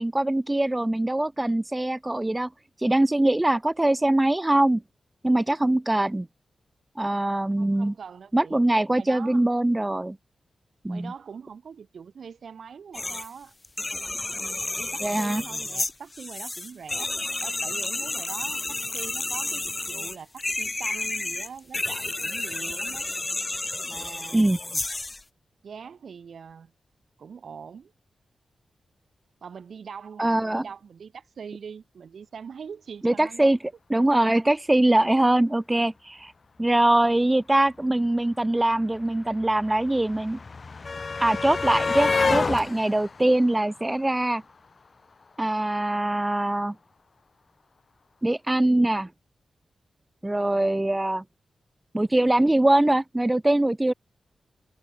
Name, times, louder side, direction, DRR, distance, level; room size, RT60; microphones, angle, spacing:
voice 1, 0.0-2.5 2.8-4.8 5.2-6.3 7.0-7.9 8.3-10.2 10.8-11.1 15.0-15.4 24.3-24.6 30.2-30.6 33.0-33.6 33.9-36.3 36.6-40.4 41.2-44.4 45.4-46.7 48.2-49.1 50.2-51.2 51.9-53.9, right 1 dB, 20° right, 1.5 m, -22 dB
voice 2, 7.6-8.6 8.9-9.4 10.9-13.5 14.3-17.1 17.4-23.1 23.8-24.5 25.6-26.7 27.2-27.9 29.4-33.5, right 6 dB, 75° right, 3.4 m, -42 dB
sound 1, 12.9-13.3 13.6-25.2, left 2 dB, 30° left, 0.6 m, -31 dB
sound 2, 38.1-38.2 38.3-44.5 45.7-45.8 46.1-46.2, left 4 dB, 50° left, 1.2 m, -29 dB
cardioid pair, 55°, 0 cm